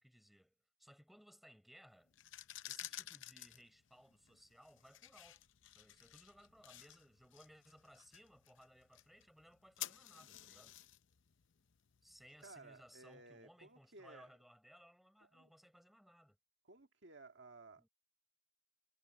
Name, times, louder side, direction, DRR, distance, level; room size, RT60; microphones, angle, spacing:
voice 1, 0.0-2.1 2.6-5.4 5.7-10.8 12.0-16.4 17.8-17.9, equal, ahead, 4.8 m, -63 dB
sound 1, 2.1-12.9, left 13 dB, 65° left, 0.7 m, -53 dB
voice 2, 12.4-14.3 15.2-15.5 16.6-17.9, right 3 dB, 60° right, 1.8 m, -58 dB
head